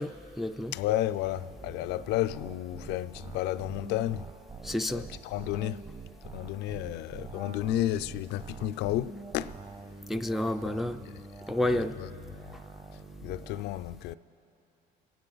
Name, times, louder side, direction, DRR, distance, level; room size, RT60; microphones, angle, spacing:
voice 1, 0.0-0.7 4.6-5.1 10.1-11.0 11.5-12.0, left 1 dB, ahead, 0.3 m, -30 dB
voice 2, 0.7-4.3 4.9-5.8 6.2-9.5 11.0-11.1 11.7-12.1 13.2-14.1, left 14 dB, 85° left, 0.4 m, -32 dB
sound 1, 1.2-13.6, right 4 dB, 30° right, 1.0 m, -46 dB
27.5 x 9.3 x 3.9 m
cardioid pair, 110°, 17 cm